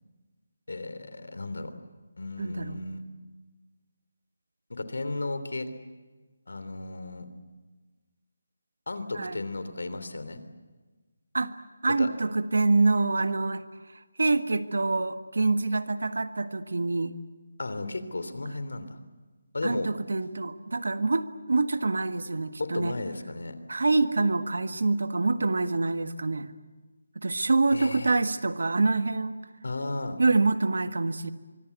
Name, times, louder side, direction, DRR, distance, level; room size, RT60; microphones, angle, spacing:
voice 1, 0.7-1.7 2.2-3.0 4.7-5.7 6.5-7.3 8.9-10.4 12.0-12.1 17.6-19.0 19.5-19.9 22.6-23.6 27.7-28.2 29.6-30.2, left 2 dB, 80° left, 11 dB, 3.1 m, -34 dB
voice 2, 2.4-2.8 9.1-9.4 11.3-11.5 11.8-13.6 14.2-17.1 19.6-22.9 23.7-26.5 27.1-29.4 30.2-31.3, right 3 dB, 75° right, 10 dB, 1.6 m, -26 dB
24.5 x 23.5 x 8.2 m, 1.3 s
figure-of-eight pair, 175°, 0 cm